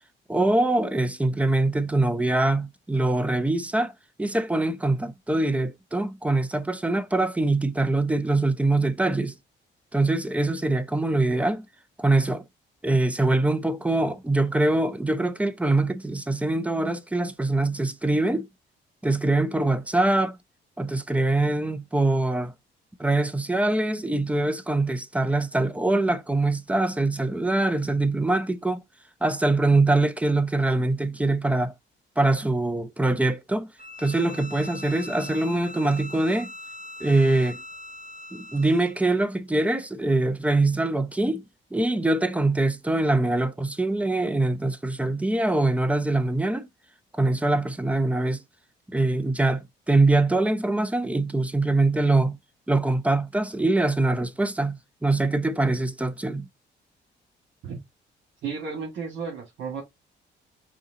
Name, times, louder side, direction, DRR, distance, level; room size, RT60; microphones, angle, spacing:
voice 1, 0.3-3.9 4.2-9.3 9.9-11.7 12.0-12.4 12.8-18.5 19.0-20.4 20.8-22.5 23.0-28.8 29.2-31.7 32.2-33.7 34.0-36.5 37.0-37.6 38.3-41.4 41.7-46.7 47.1-48.4 48.9-52.4 52.7-56.5, right 2 dB, 5° right, 0.6 m, -23 dB
Bowed string instrument, 33.8-39.0, left 2 dB, 35° right, 1.6 m, -41 dB
voice 2, 58.4-59.8, right 5 dB, 75° right, 2.1 m, -33 dB
5.0 x 2.7 x 3.8 m
cardioid pair, 90°, 20 cm